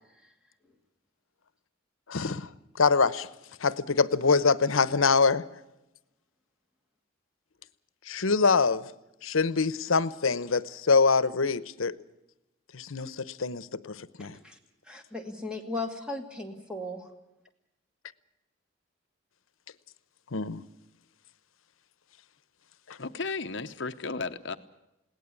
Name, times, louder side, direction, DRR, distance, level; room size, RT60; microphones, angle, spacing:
voice 1, 2.1-2.5 2.8-3.3 3.6-5.5 8.1-8.9 9.2-12.0 12.7-14.4 20.3-20.6 22.9-23.0, left 4 dB, 85° left, 0.9 m, -25 dB
voice 2, 14.2-14.6 14.9-17.1, left 2 dB, 5° right, 2.4 m, -37 dB
voice 3, 23.0-24.6, left 4 dB, 60° left, 0.9 m, -34 dB
21.0 x 18.0 x 8.4 m
head